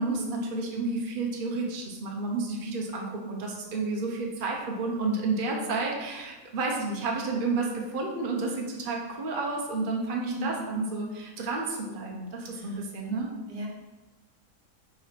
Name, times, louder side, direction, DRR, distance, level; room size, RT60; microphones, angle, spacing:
voice 1, 0.0-13.3, right 3 dB, 40° right, -1 dB, 1.2 m, -31 dB
voice 2, 10.3-10.6 12.5-13.2 13.5-13.7, equal, 75° right, -1 dB, 2.1 m, -37 dB
6.4 x 4.6 x 5.9 m, 1.1 s
omnidirectional pair, 1.6 m